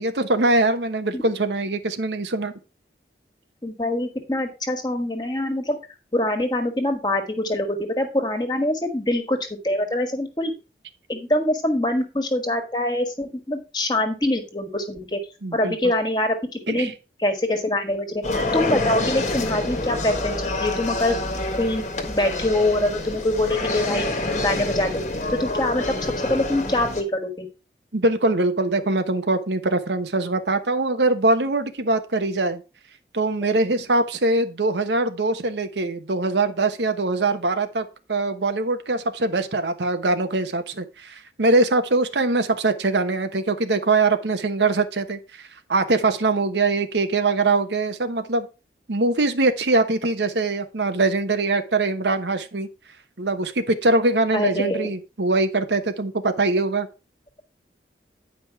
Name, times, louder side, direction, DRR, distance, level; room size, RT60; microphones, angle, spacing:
voice 1, 0.0-2.5 15.4-15.8 16.7-16.9 27.9-32.6 33.1-45.2 45.7-48.5 48.9-52.7 53.2-56.9, right 2 dB, 80° right, 1.0 m, -22 dB
voice 2, 3.6-5.8 6.1-10.5 11.1-15.2 15.5-16.9 17.2-18.2 18.5-21.2 21.6-24.1 24.4-25.0 25.3-27.5 54.3-54.9, left 1 dB, 25° left, 1.6 m, -24 dB
sound 1, 18.2-27.0, left 2 dB, 40° left, 1.4 m, -27 dB
9.7 x 5.3 x 4.6 m
head